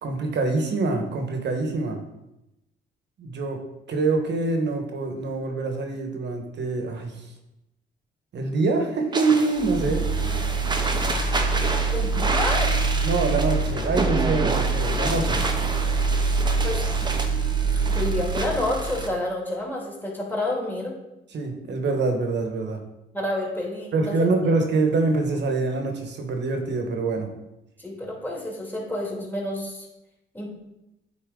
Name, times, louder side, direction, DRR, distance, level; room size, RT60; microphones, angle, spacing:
voice 1, 0.0-2.0 3.2-3.6 3.9-7.3 8.3-10.1 12.1-12.3 13.0-15.5 21.3-22.8 23.9-27.3, right 3 dB, 60° right, 4 dB, 1.3 m, -25 dB
sound 1, 9.1-19.1, right 2 dB, 20° right, 0.9 m, -30 dB
sound 2, 9.6-19.2, right 4 dB, 80° right, 0.9 m, -25 dB
voice 2, 11.9-12.7 16.6-16.8 17.9-20.9 23.1-24.3 27.8-29.9 30.3-30.5, left 1 dB, 10° left, -3 dB, 2.4 m, -29 dB
8.7 x 4.1 x 3.8 m, 0.92 s
cardioid pair, 90°, 20 cm